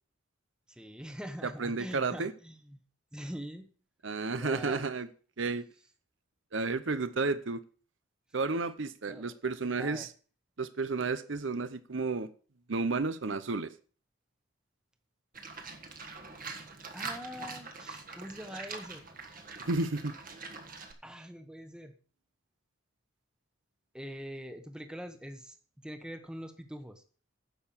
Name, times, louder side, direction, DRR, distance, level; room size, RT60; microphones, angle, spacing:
voice 1, 0.7-2.8 3.1-3.7 4.3-5.0 9.1-9.4 9.8-10.1 16.9-19.4 21.0-22.0 23.9-27.0, equal, 5° right, 1.1 m, -44 dB
voice 2, 1.6-2.3 4.0-5.1 5.4-5.6 6.5-7.6 8.3-10.1 10.6-12.3 12.7-13.7 19.6-20.1, right 3 dB, 65° right, 0.8 m, -32 dB
Livestock farm animals working animals, 15.3-20.9, right 4 dB, 45° right, 1.6 m, -44 dB
10.0 x 6.9 x 7.2 m
head